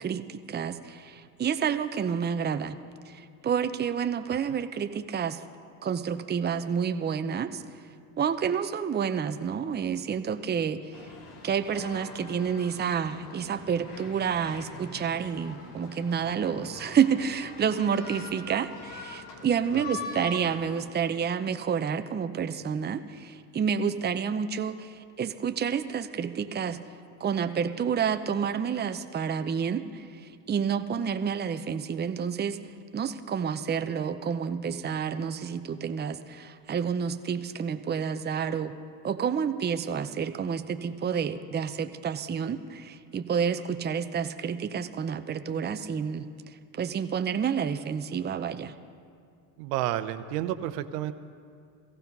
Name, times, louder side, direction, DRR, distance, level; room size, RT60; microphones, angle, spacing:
voice 1, 0.0-2.8 3.1-5.4 5.8-7.6 8.2-11.1 11.4-26.8 27.2-32.6 32.9-38.7 39.0-46.3 46.7-48.7, right 7 dB, 20° right, 9 dB, 0.7 m, -29 dB
sound 1, 10.9-20.9, left 4 dB, 60° left, 2.0 m, -43 dB
voice 2, 49.6-51.1, right 13 dB, 75° right, 11 dB, 0.8 m, -31 dB
16.5 x 15.0 x 5.4 m, 2.3 s
hypercardioid pair, 75°, 47 cm